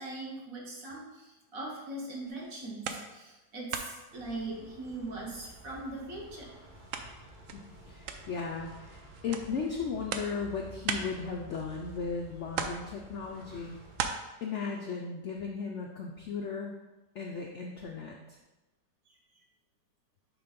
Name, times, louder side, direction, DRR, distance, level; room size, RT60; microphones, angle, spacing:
voice 1, 0.0-6.5, right 2 dB, 55° right, -2 dB, 1.6 m, -40 dB
sound 1, 2.3-3.4 3.7-5.3 5.6-12.1 12.5-14.1, right 6 dB, 70° right, 0.7 m, -40 dB
sound 2, 4.1-14.0, right 1 dB, 35° right, 0.9 m, -52 dB
voice 2, 7.5-13.8 14.4-16.8 17.2-18.2, left 5 dB, 85° left, 1 dB, 0.6 m, -36 dB
6.1 x 3.1 x 5.1 m, 1.1 s
omnidirectional pair, 1.9 m